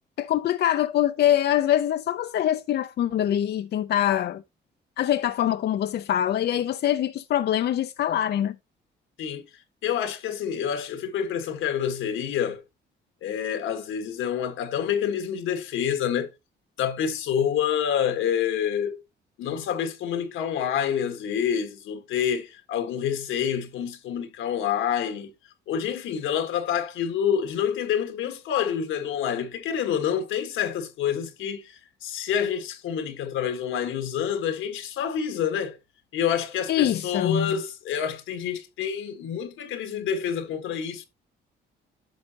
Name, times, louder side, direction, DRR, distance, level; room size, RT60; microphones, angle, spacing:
voice 1, 0.2-4.4 5.0-8.5 36.7-37.6, left 11 dB, 55° left, 0.4 m, -24 dB
voice 2, 9.8-12.6 13.2-16.3 16.8-19.0 19.4-25.3 25.7-35.8 36.1-41.1, left 8 dB, 85° left, 1.4 m, -27 dB
10.5 x 6.3 x 2.8 m
cardioid pair, 90°, 20 cm